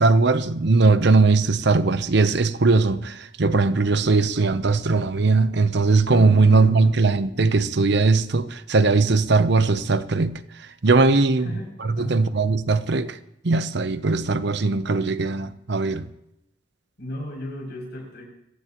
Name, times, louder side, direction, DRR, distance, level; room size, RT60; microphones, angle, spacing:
voice 1, 0.0-10.3 10.6-11.5 11.8-13.2 13.4-16.1, right 3 dB, 65° right, 0.8 m, -19 dB
Drum, 6.1-8.0, equal, ahead, 4.0 m, -36 dB
voice 2, 6.4-6.9 11.3-11.7 12.0-12.3 17.0-18.2, left 1 dB, 60° left, 6.9 m, -35 dB
26.0 x 15.0 x 3.0 m
head